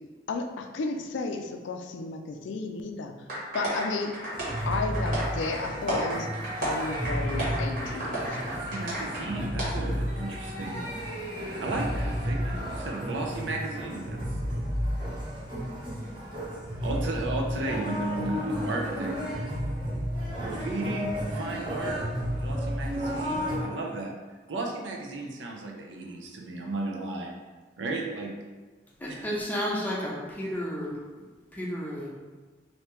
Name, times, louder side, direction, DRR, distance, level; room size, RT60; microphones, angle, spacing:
voice 1, 0.3-3.1 3.5-4.1 4.7-6.3 6.6-8.2, left 3 dB, 90° left, 5 dB, 0.4 m, -33 dB
sound 1, 3.3-9.2 9.6-9.7, right 1 dB, 55° right, 1.3 m, -32 dB
sound 2, 4.3-23.6, equal, 25° right, 0.9 m, -32 dB
voice 2, 8.4-10.9 11.6-14.2 16.1-16.4 16.7-19.2 20.4-22.0 22.4-24.1 24.5-27.3 27.8-28.3 29.1-29.2, right 2 dB, 90° right, 0 dB, 0.6 m, -34 dB
voice 3, 29.0-30.9 31.5-32.1, equal, 10° left, -4 dB, 0.5 m, -32 dB
3.3 x 2.7 x 3.0 m, 1.3 s
head